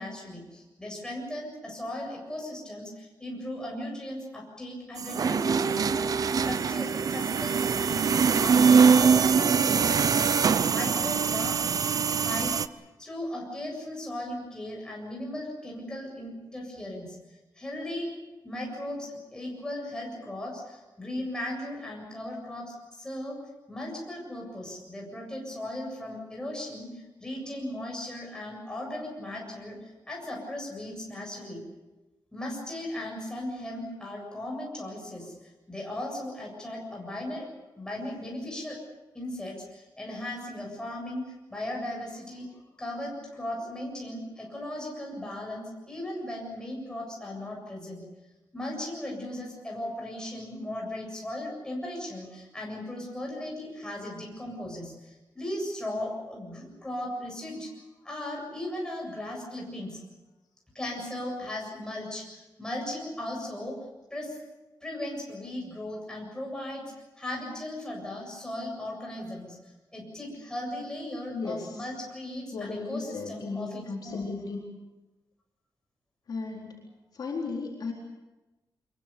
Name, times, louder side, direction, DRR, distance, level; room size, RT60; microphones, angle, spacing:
voice 1, 0.0-8.0 8.4-10.4 10.7-11.6 12.0-12.6 13.0-17.2 17.6-18.1 18.4-23.4 23.7-31.6 32.3-35.3 35.7-37.5 37.8-38.8 39.1-48.0 48.5-57.7 58.0-60.0 60.7-63.8 64.1-64.4 64.8-66.8 67.2-69.6 69.9-74.3, left 1 dB, 10° left, -1 dB, 7.7 m, -37 dB
sound 1, 5.0-12.7, right 6 dB, 50° right, 0.7 m, -23 dB
voice 2, 71.3-71.9 72.5-74.6 76.3-76.8 77.1-77.9, left 4 dB, 55° left, -2 dB, 4.2 m, -35 dB
25.5 x 22.5 x 7.0 m, 1.1 s
wide cardioid pair, 170°, 8 cm